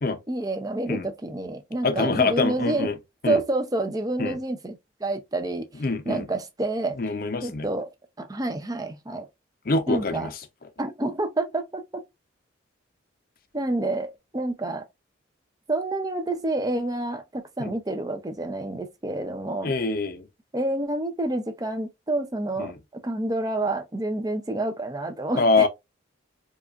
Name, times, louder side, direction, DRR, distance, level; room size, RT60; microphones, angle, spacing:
voice 1, 0.3-2.9 3.3-5.7 6.1-7.0 7.4-7.9 8.2-9.3 9.9-10.3 10.8-12.0 13.5-14.9 15.7-19.7 20.5-25.7, right 2 dB, 20° right, 0.5 m, -28 dB
voice 2, 1.8-3.0 3.2-3.4 4.2-4.4 5.8-6.2 7.0-7.7 9.7-10.3 17.6-17.7 19.6-20.2 22.6-22.8 25.4-25.7, left 3 dB, 50° left, 0.6 m, -24 dB
4.7 x 2.4 x 2.4 m
head